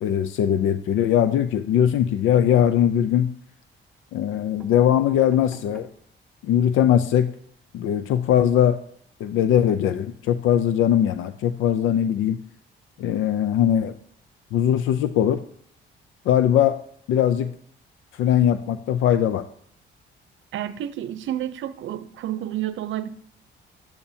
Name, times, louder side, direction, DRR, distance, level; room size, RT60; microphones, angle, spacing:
voice 1, 0.0-3.3 4.1-5.9 6.4-7.3 7.7-8.8 9.2-12.4 13.0-13.9 14.5-15.4 16.3-16.8 17.1-17.5 18.1-19.4, left 10 dB, 85° left, 11 dB, 0.5 m, -20 dB
sound 1, 2.7-3.2 3.9-4.0 4.3-6.1 6.6-6.7 6.9-7.0 7.3-7.5, equal, ahead, 2.5 m, -49 dB
voice 2, 20.5-23.1, right 12 dB, 75° right, 14 dB, 0.6 m, -30 dB
12.0 x 8.6 x 2.8 m, 0.63 s
cardioid pair, 90°, 20 cm